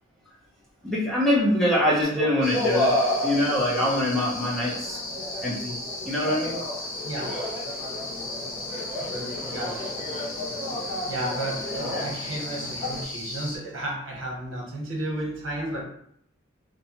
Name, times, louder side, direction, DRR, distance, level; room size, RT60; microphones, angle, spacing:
voice 1, 0.8-2.9 3.2-5.0 5.4-5.7 6.0-6.6, left 1 dB, ahead, -6 dB, 0.6 m, -24 dB
sound 1, 2.0-13.0, left 1 dB, 25° left, 1.1 m, -32 dB
sound 2, 2.4-13.6, left 2 dB, 75° left, 0.7 m, -36 dB
voice 2, 7.0-7.4 9.1-9.8 11.1-15.8, right 1 dB, 65° right, -2 dB, 1.0 m, -33 dB
2.7 x 2.2 x 2.8 m, 0.70 s
head